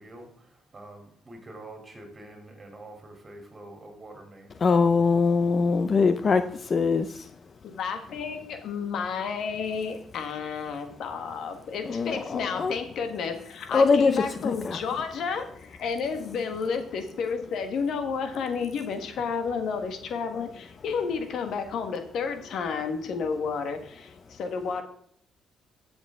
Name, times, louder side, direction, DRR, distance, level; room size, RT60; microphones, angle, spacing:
voice 1, 0.0-4.5 23.8-23.9, right 2 dB, 30° right, 3 dB, 3.3 m, -46 dB
voice 2, 4.6-6.4 6.7-7.2 11.9-12.7 13.7-14.8, left 4 dB, 45° left, 10 dB, 0.6 m, -22 dB
voice 3, 7.6-24.8, left 5 dB, 70° left, 7 dB, 1.6 m, -31 dB
12.0 x 7.2 x 3.7 m, 0.62 s
cardioid pair, 90°, 0 cm